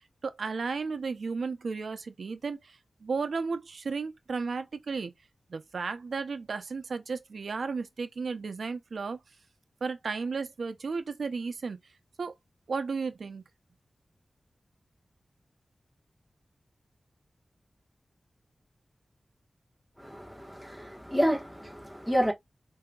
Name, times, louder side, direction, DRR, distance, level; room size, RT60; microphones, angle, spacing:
voice 1, 0.2-5.1 5.5-9.2 9.8-11.8 12.2-12.3 12.7-13.5, right 4 dB, 80° right, 0.6 m, -34 dB
voice 2, 20.0-22.3, equal, 10° left, 1.2 m, -29 dB
4.8 x 2.7 x 2.2 m
wide cardioid pair, 75°, 0 cm